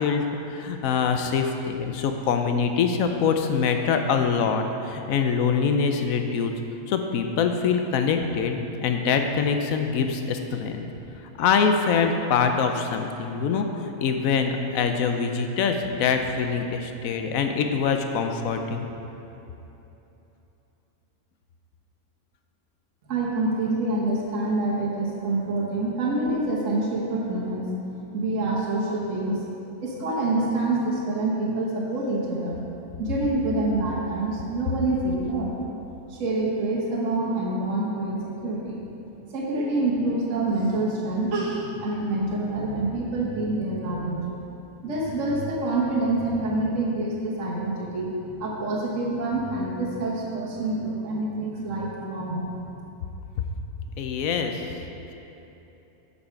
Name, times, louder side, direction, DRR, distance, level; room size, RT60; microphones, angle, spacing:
voice 1, 0.0-6.5 6.9-10.8 11.4-18.9 53.4-53.5 54.0-54.6, left 6 dB, 70° left, 5 dB, 1.0 m, -24 dB
voice 2, 23.1-27.7 28.1-29.4 29.8-32.6 33.0-35.5 36.1-38.8 39.3-44.3 44.8-52.7, right 2 dB, 55° right, -4 dB, 1.4 m, -26 dB
8.1 x 6.9 x 4.6 m, 3.0 s
omnidirectional pair, 1.6 m